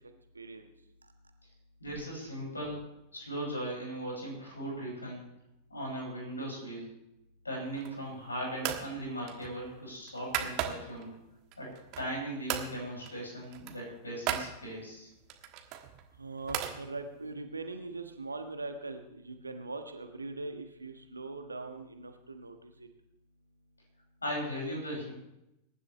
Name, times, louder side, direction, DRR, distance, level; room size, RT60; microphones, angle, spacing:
voice 1, 1.8-2.8 3.1-5.2 5.7-6.9 7.4-11.1 11.6-15.1 24.2-25.1, right 1 dB, 80° left, -2 dB, 6.2 m, -38 dB
sound 1, 7.7-8.1 8.6-8.9 9.3-11.0 11.5-12.2 12.5-12.7 13.0-13.2 13.4-14.5 15.3-16.8, right 10 dB, 40° right, 1.5 m, -36 dB
voice 2, 16.2-22.5, right 3 dB, 80° right, 6 dB, 1.4 m, -41 dB
22.0 x 11.0 x 3.2 m, 0.85 s
figure-of-eight pair, 90°, 0 cm